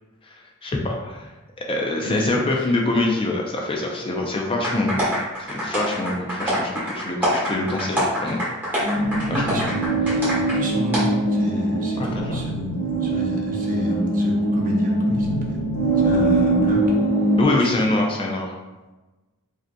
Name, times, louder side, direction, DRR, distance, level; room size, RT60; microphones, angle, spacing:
voice 1, 0.2-1.3 1.6-5.1 5.5-8.4 9.3-9.6 12.0-12.5 17.4-18.5, left 2 dB, 25° left, 0 dB, 0.4 m, -25 dB
voice 2, 2.0-2.4 9.2-10.0 10.3-15.6 16.0-16.8 17.5-17.7, equal, 40° right, -1 dB, 0.7 m, -30 dB
sound 1, 4.6-10.6 10.9-11.0, equal, 10° right, 1.4 m, -25 dB
sound 2, 8.8-17.4, right 2 dB, 90° left, 0.9 m, -22 dB
4.9 x 2.7 x 2.2 m, 1.1 s
head